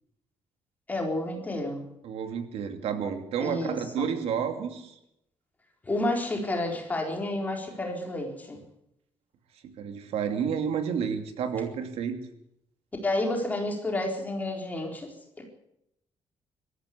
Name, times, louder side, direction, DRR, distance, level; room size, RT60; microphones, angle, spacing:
voice 1, 0.9-1.8 3.4-4.1 5.8-8.6 13.0-15.5, left 1 dB, 15° left, 1 dB, 4.1 m, -30 dB
voice 2, 2.0-4.9 9.8-12.2, right 7 dB, 75° right, 7 dB, 2.7 m, -30 dB
23.5 x 13.5 x 8.5 m, 0.80 s
cardioid pair, 175°, 10 cm